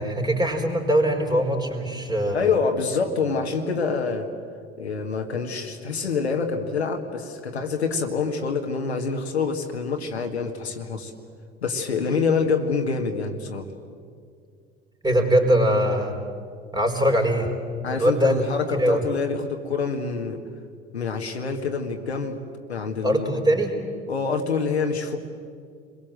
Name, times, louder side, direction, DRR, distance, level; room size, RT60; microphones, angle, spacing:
voice 1, 0.0-2.5 15.0-16.2 16.7-17.5 17.9-18.4 18.8-19.0 23.0-23.8, equal, 10° right, 3 dB, 4.7 m, -22 dB
voice 2, 2.3-4.3 4.8-11.1 11.6-13.7 17.8-20.4 20.9-22.4 22.7-23.4 24.1-25.2, left 5 dB, 80° left, 4 dB, 1.9 m, -26 dB
29.5 x 22.5 x 7.8 m, 2.2 s
figure-of-eight pair, 70°, 32 cm